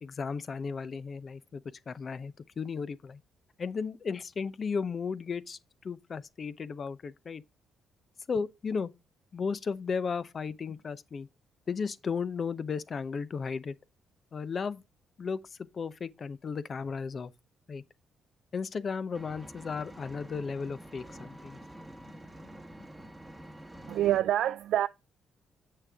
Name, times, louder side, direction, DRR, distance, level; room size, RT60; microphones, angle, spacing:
voice 1, 0.0-3.2 3.6-7.4 8.3-8.9 9.3-11.3 11.7-13.8 14.3-14.8 15.2-17.3 17.7-17.8 18.5-21.6, left 5 dB, 45° left, 0.7 m, -35 dB
Engine, 19.1-24.2, right 1 dB, 10° right, 1.2 m, -48 dB
voice 2, 23.9-24.9, right 12 dB, 80° right, 0.3 m, -26 dB
7.7 x 6.4 x 3.5 m
cardioid pair, 90°, 0 cm